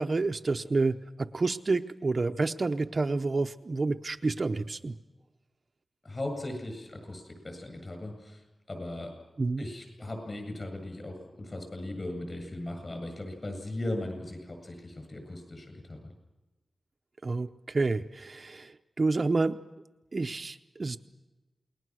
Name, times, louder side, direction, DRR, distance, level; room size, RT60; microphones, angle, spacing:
voice 1, 0.0-4.9 9.4-9.6 17.2-19.6 20.1-21.0, right 3 dB, 40° right, 7 dB, 0.7 m, -29 dB
voice 2, 6.0-8.4 8.7-9.1 9.6-16.0, left 1 dB, 35° left, 6 dB, 8.0 m, -38 dB
28.5 x 21.0 x 6.3 m, 1.1 s
wide cardioid pair, 125°, 0 cm